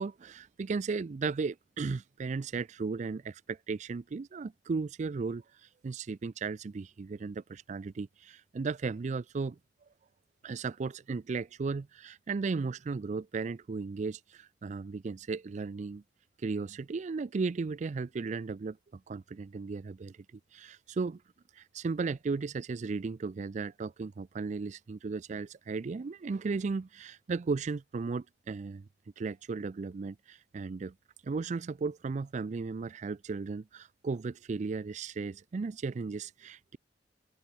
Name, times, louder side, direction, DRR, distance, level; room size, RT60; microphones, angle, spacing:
voice 1, 0.0-5.4 5.8-9.6 10.4-16.0 16.4-20.2 20.5-21.2 21.6-28.9 29.2-30.9 31.2-36.8, right 4 dB, 40° right, 0.4 m, -35 dB
head